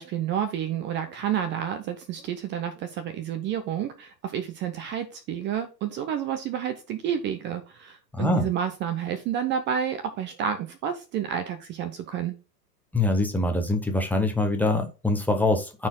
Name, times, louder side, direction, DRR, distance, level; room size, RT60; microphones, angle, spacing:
voice 1, 0.0-12.3, right 9 dB, 25° right, 9 dB, 0.8 m, -30 dB
voice 2, 8.1-8.5 12.9-15.9, left 2 dB, 5° left, 3 dB, 0.9 m, -24 dB
13.0 x 4.5 x 2.3 m, 0.32 s
hypercardioid pair, 110°, 49 cm